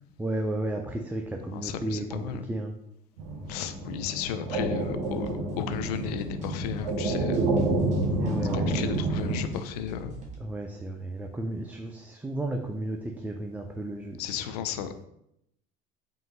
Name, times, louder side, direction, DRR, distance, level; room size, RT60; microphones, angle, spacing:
voice 1, 0.2-2.7 8.2-8.9 10.4-14.2, right 1 dB, 10° right, 3 dB, 0.3 m, -33 dB
voice 2, 1.5-2.5 3.5-7.5 8.5-10.2 14.2-15.0, left 9 dB, 90° left, 9 dB, 0.4 m, -34 dB
sound 1, 3.2-9.4, right 2 dB, 70° right, 1.1 m, -29 dB
sound 2, 4.8-10.3, right 1 dB, 35° right, 1.1 m, -45 dB
3.8 x 2.6 x 3.8 m, 0.78 s
supercardioid pair, 95°, 20 cm